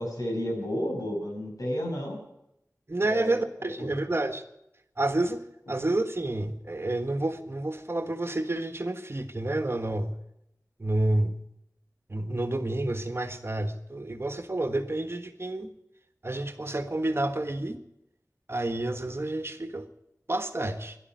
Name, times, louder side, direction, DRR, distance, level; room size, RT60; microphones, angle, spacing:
voice 1, 0.0-2.2 3.0-3.4 3.8-4.0, equal, 80° left, 0 dB, 6.2 m, -32 dB
voice 2, 2.9-4.4 5.0-5.4 5.7-10.1 10.8-11.4 12.1-15.7 16.2-17.8 18.5-19.9 20.3-21.0, right 2 dB, 40° right, 8 dB, 1.5 m, -29 dB
12.0 x 11.5 x 9.5 m, 0.81 s
wide cardioid pair, 55°, 6 cm